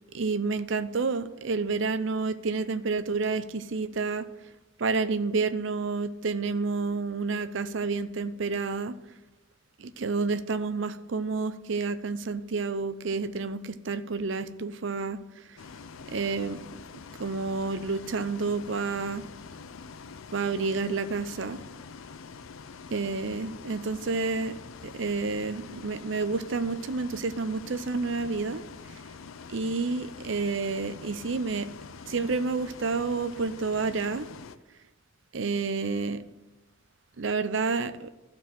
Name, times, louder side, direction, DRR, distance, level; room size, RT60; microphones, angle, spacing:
voice 1, 0.1-4.3 4.8-8.9 9.8-15.2 16.1-16.6 17.2-19.2 20.3-21.6 22.9-24.6 24.8-28.6 29.5-31.6 32.1-34.3 35.3-36.2 37.2-38.1, right 4 dB, 65° right, 13 dB, 0.6 m, -29 dB
Bus, 15.6-34.6, left 5 dB, 80° left, 0.5 m, -45 dB
12.5 x 4.6 x 7.7 m, 1.1 s
head